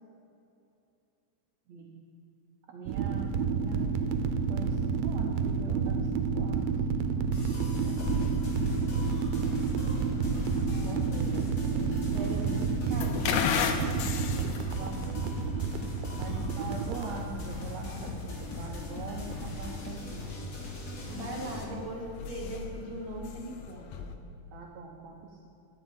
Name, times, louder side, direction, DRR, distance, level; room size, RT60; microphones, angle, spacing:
voice 1, 2.7-3.9 4.5-6.7 7.7-8.2 10.7-11.9 14.3-15.2 16.1-20.4 21.2-21.4 24.5-25.5, right 4 dB, 75° right, 1 dB, 1.6 m, -43 dB
sound 1, 2.9-17.1, right 6 dB, 90° right, 2.5 m, -30 dB
sound 2, 7.3-21.6, left 2 dB, 60° left, 1.0 m, -39 dB
sound 3, 8.0-24.2, left 6 dB, 80° left, 1.7 m, -38 dB
voice 2, 10.8-13.7 16.3-16.6 21.1-24.1, equal, 35° right, -2 dB, 1.7 m, -41 dB
12.0 x 6.2 x 8.8 m, 2.7 s
omnidirectional pair, 4.1 m